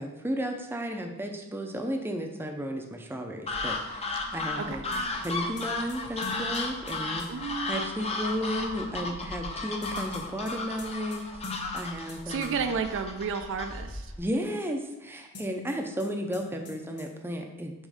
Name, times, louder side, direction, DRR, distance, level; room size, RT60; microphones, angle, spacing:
voice 1, 0.0-4.8 5.1-11.5 11.7-12.6 14.2-17.7, equal, 10° right, 3 dB, 0.6 m, -34 dB
sound 1, 3.5-14.2, left 3 dB, 30° left, 0.7 m, -34 dB
sound 2, 4.9-7.3 9.8-12.2 12.4-12.5 15.3-16.1 16.3-16.4 16.7-17.1, left 3 dB, 55° left, 1.2 m, -44 dB
voice 2, 7.3-7.8 12.3-14.1, right 5 dB, 60° right, 8 dB, 0.4 m, -32 dB
7.3 x 3.1 x 4.9 m, 1.0 s
head